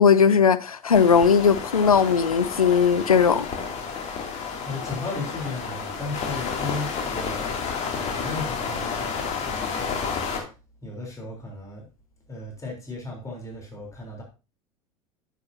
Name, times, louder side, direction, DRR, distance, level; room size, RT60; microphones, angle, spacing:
voice 1, 0.0-3.5, left 6 dB, 85° left, 0.6 m, -18 dB
sound 1, 0.9-10.4, left 5 dB, 40° left, 2.6 m, -31 dB
voice 2, 4.6-7.5 7.9-10.6 10.8-11.9 12.3-14.2, left 2 dB, 20° left, 3.6 m, -35 dB
9.8 x 8.7 x 2.7 m
figure-of-eight pair, 75°, 18 cm